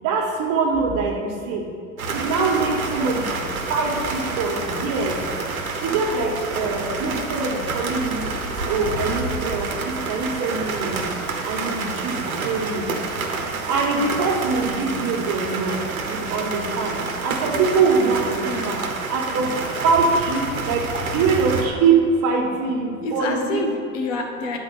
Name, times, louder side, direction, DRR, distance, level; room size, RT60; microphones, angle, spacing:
voice 1, 0.0-1.6 2.1-3.3 3.7-5.2 5.8-8.3 8.7-11.1 11.4-12.9 13.7-15.7 16.1-17.0 17.2-18.8 19.1-19.5 19.8-23.6, right 4 dB, 45° right, 1 dB, 1.6 m, -23 dB
sound 1, 2.0-21.7, right 3 dB, 90° right, 1.1 m, -28 dB
voice 2, 18.4-18.7 23.0-24.6, left 3 dB, 65° left, 2 dB, 1.5 m, -28 dB
8.7 x 4.5 x 6.7 m, 2.2 s
hypercardioid pair, 90°, 41 cm